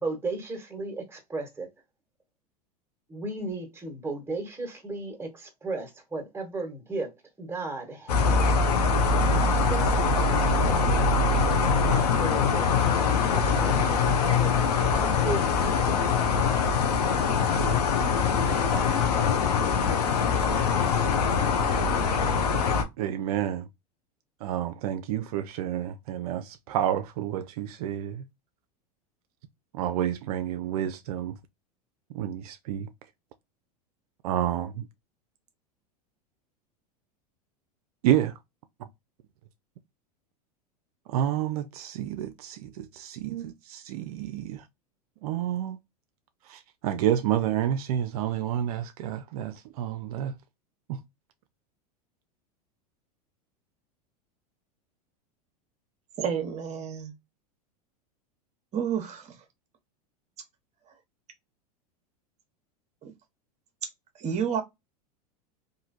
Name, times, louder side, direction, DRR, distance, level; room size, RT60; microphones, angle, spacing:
voice 1, 0.0-1.7 3.1-7.1 7.4-8.8 9.2-10.8 11.7-14.5 15.2-16.0 18.4-21.4, right 3 dB, 10° right, 1.2 m, -36 dB
sound 1, 8.1-22.8, left 4 dB, 85° left, 0.7 m, -23 dB
voice 2, 23.0-23.6 24.4-28.2 29.7-31.3 32.1-32.9 34.2-34.7 38.0-38.3 41.1-44.6 45.2-45.8 46.5-50.3 50.9-51.0, right 11 dB, 70° right, 0.4 m, -29 dB
voice 3, 56.2-57.1 58.7-59.4 63.0-63.1 64.2-64.6, right 7 dB, 35° right, 0.9 m, -30 dB
3.0 x 2.5 x 2.4 m
hypercardioid pair, 100°, 20 cm